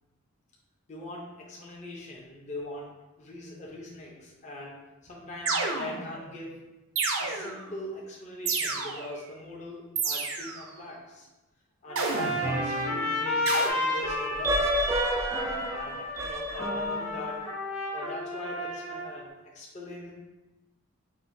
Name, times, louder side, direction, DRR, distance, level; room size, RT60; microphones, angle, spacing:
voice 1, 0.9-6.6 7.2-11.3 11.8-14.9 15.7-17.4 17.9-20.1, left 1 dB, 35° left, -4 dB, 0.6 m, -41 dB
sound 1, 5.5-6.2 7.0-7.7 8.5-9.2 10.0-10.7 12.0-12.6 13.5-13.7, right 4 dB, 85° right, 0.6 m, -30 dB
Trumpet, 11.9-19.2, left 1 dB, 85° left, 1.0 m, -32 dB
sound 2, 12.4-13.5 14.0-17.4, right 1 dB, 15° right, 0.3 m, -30 dB
5.8 x 2.6 x 2.6 m, 1.1 s
head